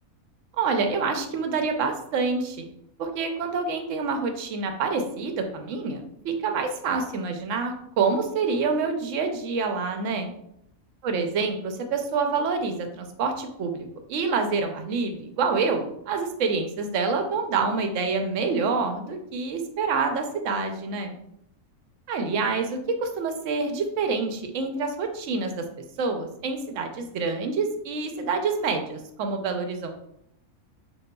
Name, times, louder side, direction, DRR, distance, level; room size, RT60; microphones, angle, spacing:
voice 1, 0.6-2.7 3.0-10.3 11.0-21.1 22.1-25.6 26.0-29.9, right 4 dB, 70° right, 5 dB, 0.9 m, -27 dB
6.1 x 2.3 x 2.2 m, 0.76 s
omnidirectional pair, 1.5 m